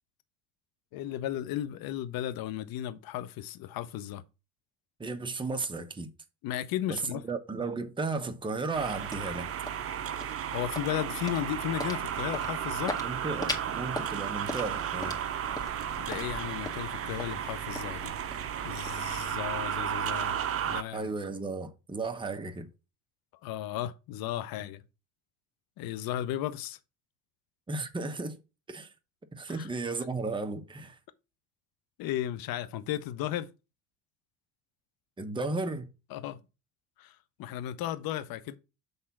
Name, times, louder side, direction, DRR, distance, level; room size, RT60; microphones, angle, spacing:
voice 1, 0.9-4.2 6.4-7.2 10.5-13.0 16.0-18.1 18.6-20.4 20.7-21.1 23.4-24.8 25.8-26.8 29.5-29.7 32.0-33.5 36.1-36.4 37.0-38.6, left 12 dB, 60° left, 0.9 m, -35 dB
voice 2, 5.0-6.1 6.9-9.5 13.0-15.2 20.9-22.7 27.7-28.4 28.7-28.9 29.3-31.0 35.2-35.9, right 3 dB, 10° right, 1.0 m, -34 dB
sound 1, 8.4-20.5, left 1 dB, 10° left, 1.8 m, -43 dB
sound 2, 8.7-20.8, right 9 dB, 35° right, 0.8 m, -34 dB
6.5 x 3.6 x 5.8 m
supercardioid pair, 90°, 41 cm